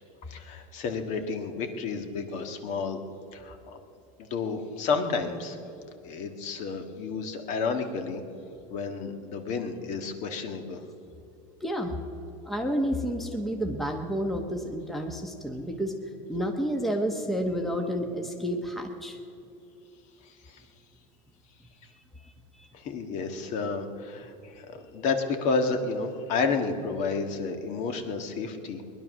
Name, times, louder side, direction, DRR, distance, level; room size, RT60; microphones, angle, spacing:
voice 1, 0.3-3.0 3.3-3.8 4.2-5.6 6.0-8.2 8.7-10.8 20.2-20.6 22.7-28.8, left 4 dB, 45° left, 6 dB, 1.6 m, -31 dB
voice 2, 11.6-11.9 12.4-16.0 16.3-19.2 22.2-22.7, equal, ahead, 3 dB, 1.1 m, -30 dB
20.0 x 11.0 x 6.3 m, 2.8 s
supercardioid pair, 145°, 17 cm